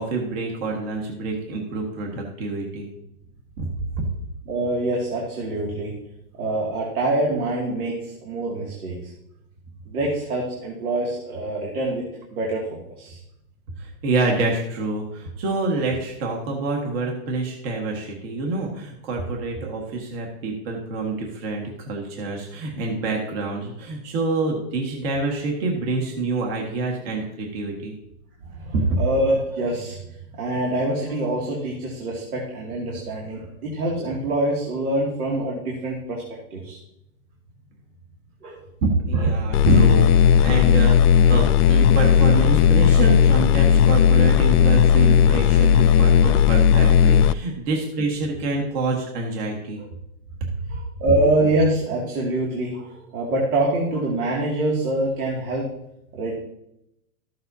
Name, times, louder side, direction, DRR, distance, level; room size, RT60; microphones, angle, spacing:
voice 1, 0.0-2.9 3.6-4.1 13.8-27.9 38.8-49.8 50.4-50.5, right 3 dB, 40° right, 0 dB, 1.8 m, -26 dB
voice 2, 4.5-5.9 6.4-9.1 9.9-12.0 12.3-13.2 28.4-30.0 30.4-36.2 36.5-36.8 38.4-38.6 39.1-39.3 49.8-49.9 50.7-55.6 56.1-56.4, right 1 dB, 75° right, -2 dB, 2.5 m, -25 dB
sound 1, 39.5-47.3, left 8 dB, 90° left, 0.5 m, -15 dB
13.5 x 7.7 x 2.8 m, 0.82 s
hypercardioid pair, 155°, 44 cm